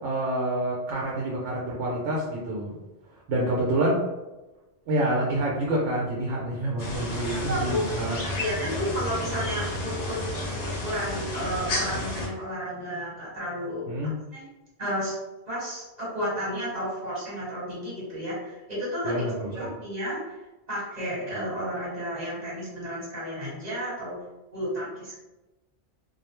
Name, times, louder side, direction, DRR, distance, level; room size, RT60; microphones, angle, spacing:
voice 1, 0.0-2.8 3.3-4.0 4.9-8.2 13.9-14.1 19.0-19.7, right 1 dB, 85° right, -3 dB, 0.9 m, -27 dB
sound 1, 6.8-12.3, left 1 dB, 60° left, 0.8 m, -31 dB
voice 2, 7.3-7.9 8.3-10.2 10.8-13.9 14.3-14.4 14.8-15.1 15.5-19.2 19.5-20.4 20.7-24.2 24.5-25.2, equal, 40° right, -8 dB, 1.3 m, -32 dB
2.4 x 2.0 x 2.9 m, 1.1 s
omnidirectional pair, 1.2 m